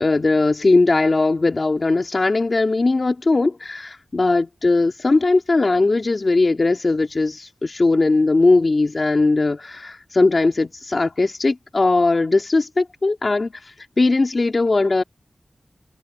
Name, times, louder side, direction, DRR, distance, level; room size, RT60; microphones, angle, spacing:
voice 1, 0.0-15.0, left 3 dB, 45° left, 2.4 m, -19 dB
wide cardioid pair, 85°, 0 cm